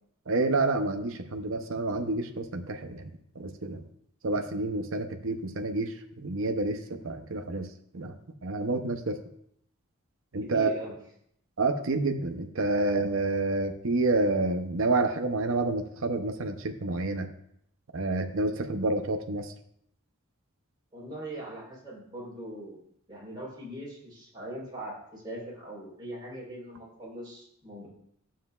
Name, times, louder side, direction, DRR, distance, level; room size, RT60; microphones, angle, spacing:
voice 1, 0.3-3.0 3.4-3.8 4.2-7.7 7.9-8.1 8.4-9.2 10.3-10.8 11.6-17.3 17.9-19.5, right 2 dB, 65° right, 5 dB, 0.7 m, -28 dB
voice 2, 10.4-11.0 20.9-22.8 23.1-27.9, right 1 dB, 20° right, -6 dB, 3.8 m, -41 dB
11.5 x 7.4 x 2.4 m, 0.70 s
head